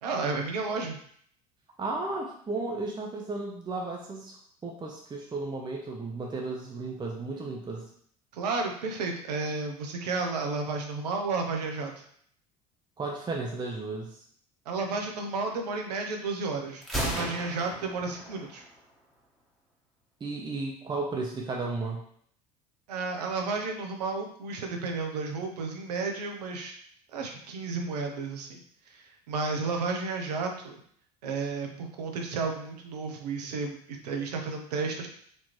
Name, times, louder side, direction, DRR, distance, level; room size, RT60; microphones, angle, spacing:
voice 1, 0.0-1.0 8.3-12.0 14.7-18.6 22.9-26.7 27.1-28.6 28.9-30.8 31.2-35.1, right 4 dB, 75° right, 3 dB, 0.8 m, -32 dB
voice 2, 1.8-4.4 4.6-7.9 13.0-14.2 20.2-22.0, right 3 dB, 20° right, -1 dB, 0.7 m, -34 dB
Gunshot gunfire, 16.8-18.8, equal, ahead, 1.3 m, -35 dB
4.4 x 2.9 x 3.1 m, 0.63 s
hypercardioid pair, 65°, 21 cm